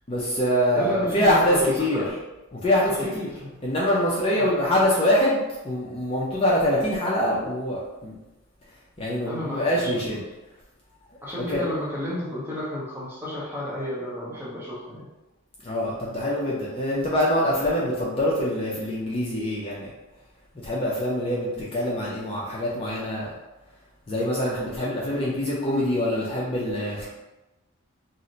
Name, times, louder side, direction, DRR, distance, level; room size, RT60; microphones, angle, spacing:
voice 1, 0.1-2.0 2.5-3.3 3.6-8.2 9.0-10.2 11.5-11.7 15.6-19.9 20.6-23.3 24.1-27.0, left 1 dB, 25° left, -6 dB, 0.5 m, -24 dB
voice 2, 0.7-2.1 2.9-3.5 4.4-4.5 9.2-10.0 11.2-15.1 25.1-25.4, left 1 dB, 10° right, -7 dB, 0.8 m, -32 dB
2.7 x 2.1 x 3.8 m, 1.0 s
head